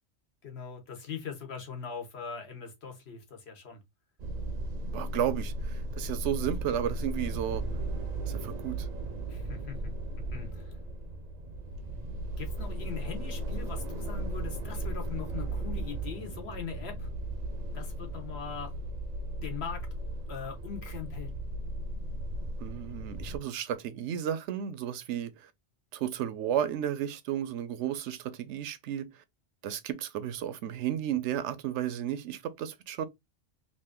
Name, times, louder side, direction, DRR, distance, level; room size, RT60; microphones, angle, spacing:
voice 1, 0.4-3.8 9.3-9.9 10.3-10.7 12.4-17.1 17.7-18.7 19.4-19.8 20.3-21.4, left 6 dB, 70° left, 1.2 m, -41 dB
sound 1, 4.2-23.4, right 1 dB, 50° right, 0.5 m, -36 dB
voice 2, 4.9-7.6 8.3-8.9 22.6-25.3 25.9-29.1 29.6-33.0, right 10 dB, 85° right, 0.9 m, -33 dB
3.0 x 2.5 x 3.5 m
omnidirectional pair, 1.2 m